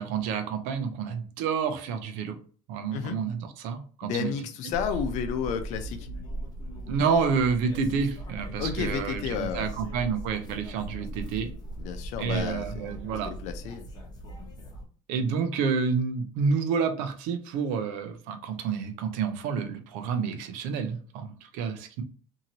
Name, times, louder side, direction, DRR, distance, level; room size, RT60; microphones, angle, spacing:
voice 1, 0.0-2.4 2.7-4.3 6.9-11.5 12.2-13.3 15.1-22.0, right 6 dB, 75° right, 7 dB, 0.6 m, -29 dB
voice 2, 4.0-6.1 8.6-9.7 11.8-12.7 12.9-13.8, left 7 dB, 65° left, 8 dB, 0.6 m, -32 dB
sound 1, 4.7-14.8, right 1 dB, 30° left, 0.9 m, -38 dB
2.8 x 2.6 x 2.9 m, 0.42 s
cardioid pair, 120°, 13 cm